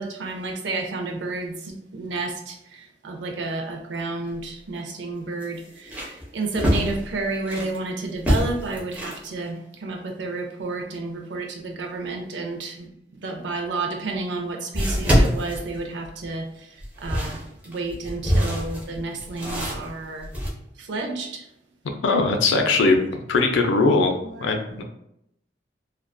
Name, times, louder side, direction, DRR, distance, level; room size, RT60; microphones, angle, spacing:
voice 1, 0.0-20.3 20.8-21.5 22.1-22.2 22.8-22.9 24.2-24.8, right 3 dB, 70° right, 3 dB, 0.5 m, -31 dB
sound 1, 4.2-4.3 4.7-4.8 5.4-7.8 8.2-9.3 13.5-13.6 14.7-16.3 16.8-20.5, equal, 10° right, 0.5 m, -25 dB
voice 2, 22.0-24.1 24.4-24.8, left 3 dB, 80° left, 4 dB, 0.4 m, -20 dB
2.5 x 2.2 x 2.2 m, 0.78 s
head